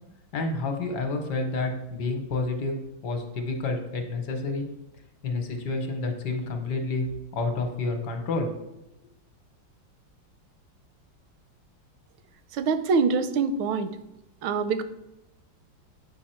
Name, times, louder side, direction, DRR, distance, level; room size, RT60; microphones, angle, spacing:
voice 1, 0.3-2.8 3.0-4.7 5.2-7.1 7.3-8.5, left 3 dB, 65° left, 5 dB, 1.3 m, -29 dB
voice 2, 12.6-13.9 14.4-14.8, right 4 dB, 85° right, 11 dB, 1.4 m, -24 dB
7.6 x 4.8 x 4.3 m, 0.89 s
omnidirectional pair, 2.2 m